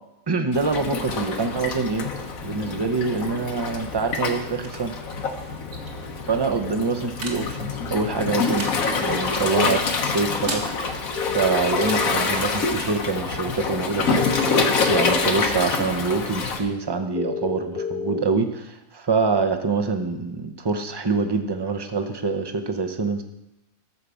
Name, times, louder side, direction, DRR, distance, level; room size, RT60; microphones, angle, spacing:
voice 1, 0.3-2.1 2.4-4.9 6.3-10.6 11.2-14.4 14.9-23.2, right 4 dB, 25° right, 6 dB, 0.6 m, -25 dB
Waves surf, 0.5-16.6, left 4 dB, 75° left, 1.5 m, -26 dB
sound 1, 4.0-15.2, right 2 dB, 55° right, 2.0 m, -42 dB
sound 2, 9.1-9.2 11.2-12.4 14.2-15.2 17.2-18.2, left 5 dB, 45° left, 1.2 m, -29 dB
13.5 x 5.0 x 6.9 m, 0.92 s
omnidirectional pair, 1.5 m